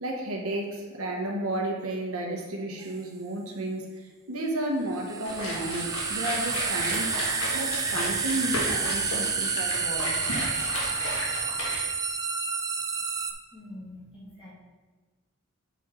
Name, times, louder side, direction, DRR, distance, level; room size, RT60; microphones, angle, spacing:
voice 1, 0.0-7.1 7.5-10.2 11.3-11.5, right 1 dB, 75° right, 0 dB, 1.1 m, -32 dB
sound 1, 2.8-2.9 4.9-13.3, right 5 dB, 15° right, 0.3 m, -30 dB
sound 2, 5.2-11.8, left 1 dB, 70° left, 1.6 m, -33 dB
voice 2, 13.5-14.5, left 1 dB, 25° left, -7 dB, 2.1 m, -44 dB
7.1 x 4.2 x 4.4 m, 1.3 s
head